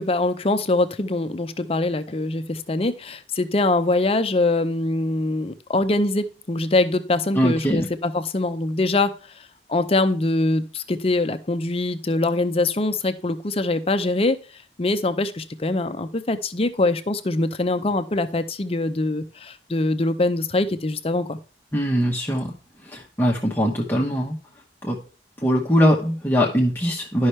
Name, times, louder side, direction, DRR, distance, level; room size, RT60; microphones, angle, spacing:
voice 1, 0.0-9.1 9.7-14.4 14.8-21.4, left 2 dB, 35° left, 10 dB, 0.6 m, -23 dB
voice 2, 7.3-7.9 21.7-22.5 22.8-24.3 24.8-25.0 25.4-27.3, equal, 10° left, -2 dB, 1.0 m, -21 dB
11.5 x 5.5 x 3.2 m, 0.36 s
head